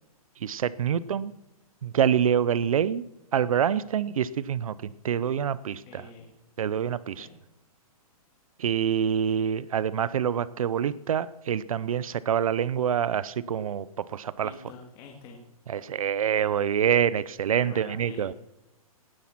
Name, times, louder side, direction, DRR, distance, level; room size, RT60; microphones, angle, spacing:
voice 1, 0.4-1.3 1.8-3.0 3.3-4.7 5.0-6.1 6.6-7.3 8.6-14.5 15.7-18.3, right 8 dB, 65° right, 19 dB, 0.7 m, -26 dB
voice 2, 5.9-6.3 7.2-7.4 14.4-15.4 17.5-18.3, left 4 dB, 20° left, 0 dB, 2.0 m, -46 dB
18.0 x 10.0 x 5.9 m, 0.91 s
hypercardioid pair, 170°, 19 cm